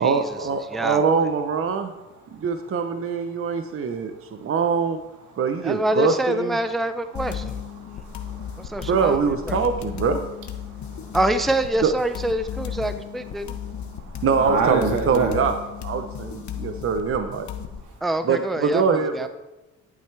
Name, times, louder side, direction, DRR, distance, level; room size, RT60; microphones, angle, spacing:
voice 1, 0.0-1.9 2.3-5.0 5.4-6.6 8.9-10.2 11.8-11.9 14.2-15.5 15.8-17.5 18.2-19.3, right 5 dB, 45° right, 7 dB, 0.8 m, -23 dB
voice 2, 0.7-1.2 5.6-7.6 8.6-9.6 11.1-13.6 18.0-19.3, right 1 dB, ahead, 10 dB, 0.5 m, -26 dB
sound 1, 7.1-17.8, left 8 dB, 70° left, 1.1 m, -34 dB
voice 3, 7.8-8.9 10.6-11.2 13.9-15.4, right 5 dB, 80° right, 3 dB, 2.0 m, -28 dB
11.0 x 9.1 x 3.4 m, 1.0 s
cardioid pair, 90°, 30 cm